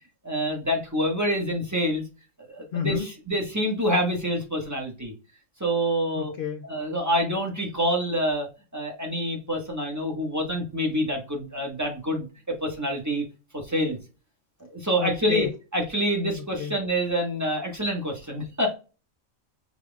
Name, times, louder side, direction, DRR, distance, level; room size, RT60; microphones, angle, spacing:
voice 1, 0.2-2.0 2.4-5.1 5.6-6.3 6.6-13.2 13.5-14.0 14.7-18.8, equal, 15° right, 1.4 m, -27 dB
voice 2, 2.7-3.1 6.2-6.7 15.0-15.5 16.6-16.7, left 9 dB, 70° left, 0.5 m, -30 dB
6.0 x 3.8 x 2.3 m
omnidirectional pair, 1.4 m